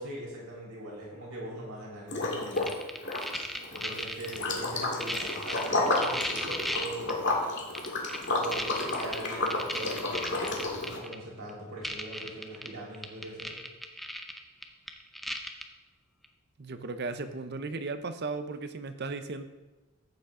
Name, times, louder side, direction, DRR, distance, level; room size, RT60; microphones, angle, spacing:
voice 1, 0.0-2.7 3.7-7.2 8.3-13.6, right 1 dB, 85° right, -4 dB, 3.8 m, -41 dB
Liquid, 2.1-2.8 3.0-11.0, left 2 dB, 55° left, 2.1 m, -31 dB
sound 1, 2.5-4.4 4.8-7.1 7.7-11.1 11.5-11.6 11.8-12.7 12.9-15.6 16.2-16.3, equal, ahead, 0.6 m, -35 dB
voice 2, 16.6-19.4, right 3 dB, 50° right, 10 dB, 0.7 m, -36 dB
14.0 x 8.3 x 3.8 m, 1.2 s
head